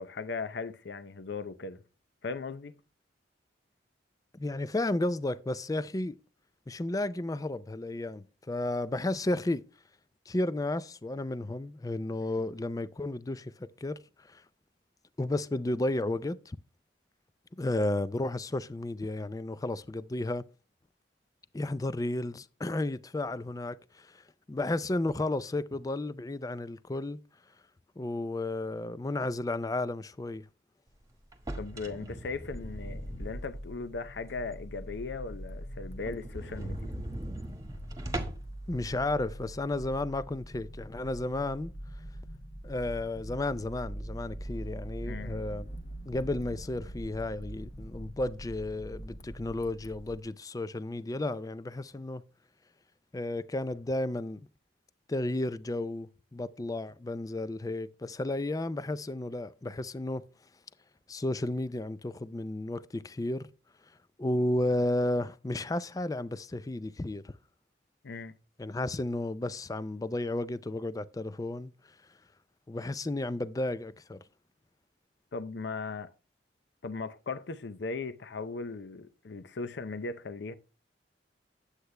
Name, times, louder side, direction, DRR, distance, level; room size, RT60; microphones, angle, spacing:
voice 1, 0.0-1.8 2.2-2.7 31.6-36.9 45.0-45.5 68.0-68.3 75.3-76.1 76.8-80.5, left 4 dB, 65° left, 0.6 m, -38 dB
voice 2, 4.3-6.2 6.7-9.6 10.3-14.4 15.2-16.6 17.6-20.5 21.5-24.2 24.5-27.2 28.0-30.5 38.7-41.7 42.6-45.7 46.1-52.2 53.1-54.4 55.1-60.2 61.1-63.5 64.2-67.3 68.6-71.7 72.7-74.2, left 2 dB, 20° left, 0.4 m, -33 dB
sound 1, 31.3-33.9 34.3-34.4 34.8-34.9 35.2-35.3 35.5-35.6 36.0-38.6, right 1 dB, 20° right, 1.3 m, -39 dB
sound 2, 32.5-50.2, equal, 40° left, 1.1 m, -43 dB
9.8 x 8.0 x 3.2 m
head